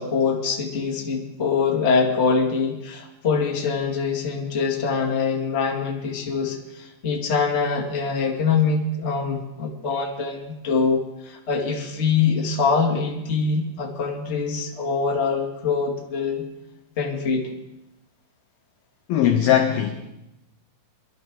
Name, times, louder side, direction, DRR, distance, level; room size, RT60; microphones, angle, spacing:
voice 1, 0.0-16.4 17.0-17.5, left 5 dB, 40° left, -2 dB, 0.9 m, -24 dB
voice 2, 19.1-20.1, left 10 dB, 85° left, 5 dB, 2.0 m, -20 dB
23.0 x 12.0 x 3.8 m, 0.90 s
omnidirectional pair, 5.3 m